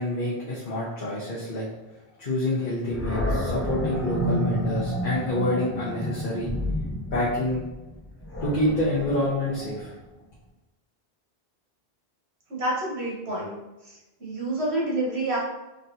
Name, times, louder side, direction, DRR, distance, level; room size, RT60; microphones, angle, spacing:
voice 1, 0.0-1.7 2.2-6.5 7.1-7.6 8.4-9.9, left 1 dB, 55° left, -7 dB, 1.1 m, -27 dB
Animal, 2.9-10.0, equal, 20° left, 0.5 m, -30 dB
voice 2, 12.5-13.6 14.2-15.4, right 1 dB, 90° right, -4 dB, 1.6 m, -28 dB
4.1 x 3.5 x 2.8 m, 1.0 s
omnidirectional pair, 1.1 m